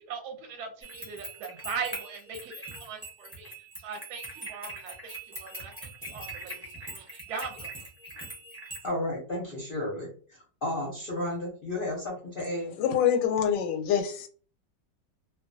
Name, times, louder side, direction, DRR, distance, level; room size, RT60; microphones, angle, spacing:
voice 1, 0.0-3.5 3.8-6.6 6.8-7.7, right 5 dB, 70° right, 4 dB, 1.0 m, -39 dB
sound 1, 0.8-8.9, right 1 dB, 15° right, 0.5 m, -42 dB
voice 2, 8.8-12.8, left 1 dB, 55° left, -3 dB, 0.6 m, -33 dB
voice 3, 12.8-14.3, left 8 dB, 85° left, 7 dB, 1.2 m, -25 dB
2.8 x 2.2 x 2.6 m, 0.43 s
omnidirectional pair, 1.9 m